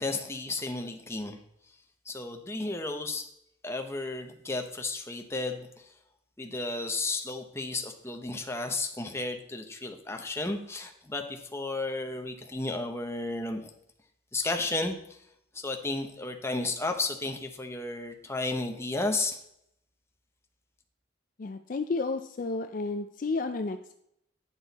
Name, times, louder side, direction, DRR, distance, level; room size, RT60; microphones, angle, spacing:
voice 1, 0.0-1.4 2.1-3.3 3.6-5.9 6.4-13.6 14.3-15.2 15.5-19.4, left 2 dB, 15° left, 5 dB, 0.8 m, -33 dB
voice 2, 21.4-23.9, left 3 dB, 45° left, 7 dB, 0.4 m, -32 dB
9.7 x 6.2 x 4.1 m, 0.74 s
head